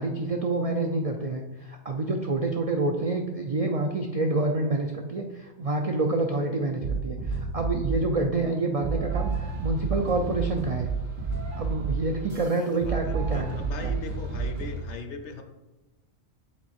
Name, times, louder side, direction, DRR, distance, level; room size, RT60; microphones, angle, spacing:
voice 1, 0.0-10.9 11.6-13.9, right 2 dB, 70° right, 3 dB, 0.3 m, -28 dB
sound 1, 6.8-8.1 8.8-14.8, right 4 dB, 85° right, 2.0 m, -30 dB
voice 2, 12.5-15.4, left 4 dB, 70° left, 6 dB, 1.0 m, -39 dB
7.5 x 3.7 x 4.2 m, 1.1 s
omnidirectional pair, 1.3 m